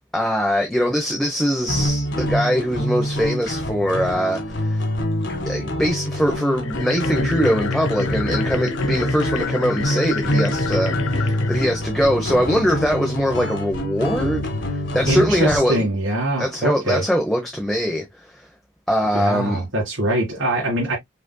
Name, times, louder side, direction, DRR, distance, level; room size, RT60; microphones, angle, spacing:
voice 1, 0.1-4.8 5.4-15.9 16.4-18.4 18.9-19.6, equal, ahead, 0.8 m, -22 dB
sound 1, 1.7-15.8, equal, 60° left, 1.7 m, -26 dB
sound 2, 6.5-12.8, left 3 dB, 75° left, 0.8 m, -28 dB
voice 2, 15.0-17.1 19.1-21.0, right 1 dB, 70° right, 2.2 m, -23 dB
5.3 x 4.2 x 2.2 m
head